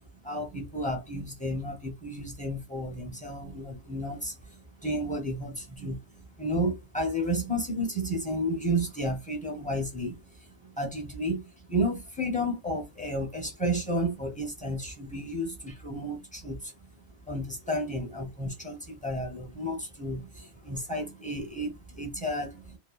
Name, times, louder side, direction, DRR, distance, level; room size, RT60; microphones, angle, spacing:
voice 1, 0.2-10.2 10.6-16.7 17.3-22.8, equal, 10° left, 0.4 m, -32 dB
2.7 x 2.0 x 2.2 m
omnidirectional pair, 1.3 m